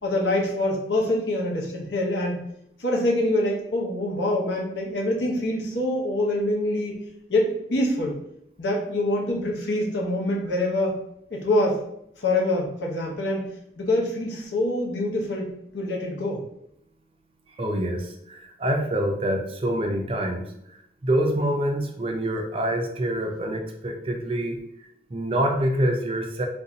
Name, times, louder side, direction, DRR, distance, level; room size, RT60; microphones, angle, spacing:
voice 1, 0.0-2.4 2.8-6.9 7.3-8.2 8.6-11.0 11.3-11.8 12.2-13.5 13.8-16.4, left 1 dB, 85° left, -2 dB, 0.8 m, -25 dB
voice 2, 17.5-20.5 21.0-24.6 25.1-26.5, right 1 dB, 30° right, 3 dB, 0.4 m, -26 dB
2.6 x 2.3 x 3.8 m, 0.77 s
head